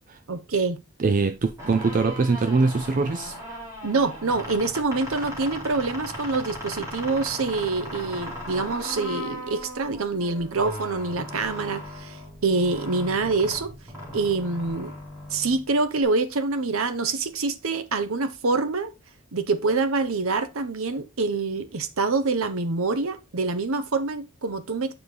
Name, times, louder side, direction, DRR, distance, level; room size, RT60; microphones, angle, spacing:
voice 1, 0.3-0.8 3.8-12.2 12.4-13.7 14.1-14.9 15.3-18.9 19.3-24.9, right 3 dB, 65° right, 0.8 m, -26 dB
voice 2, 1.0-3.3, right 4 dB, 35° right, 0.4 m, -23 dB
sound 1, 1.5-16.0, left 1 dB, 15° right, 2.3 m, -38 dB
7.0 x 4.9 x 3.8 m
head